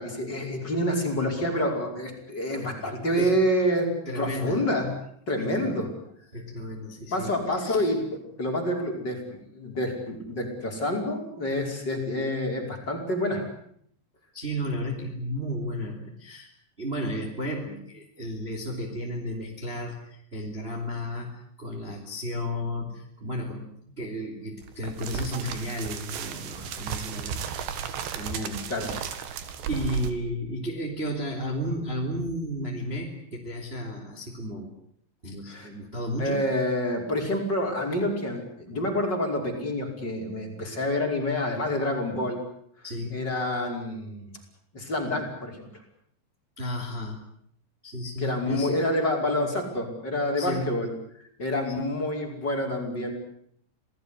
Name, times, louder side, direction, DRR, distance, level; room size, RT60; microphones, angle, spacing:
voice 1, 0.0-3.9 4.2-4.9 5.3-5.9 7.1-8.0 8.4-13.4 28.7-28.9 35.5-35.7 36.2-42.4 43.1-44.3 44.7-45.6 48.2-50.9 51.4-53.1, left 1 dB, 25° left, 1 dB, 5.6 m, -27 dB
voice 2, 4.0-4.7 5.4-5.9 6.3-7.9 14.3-16.5 16.8-27.5 28.0-29.2 29.7-34.7 35.2-36.4 42.8-43.2 46.6-47.2 47.8-48.8 50.4-50.7 51.7-52.0, equal, 15° right, 2 dB, 3.2 m, -33 dB
sound 1, 24.6-30.1, right 8 dB, 80° right, 4.2 m, -34 dB
27.5 x 18.5 x 9.7 m, 0.67 s
omnidirectional pair, 5.0 m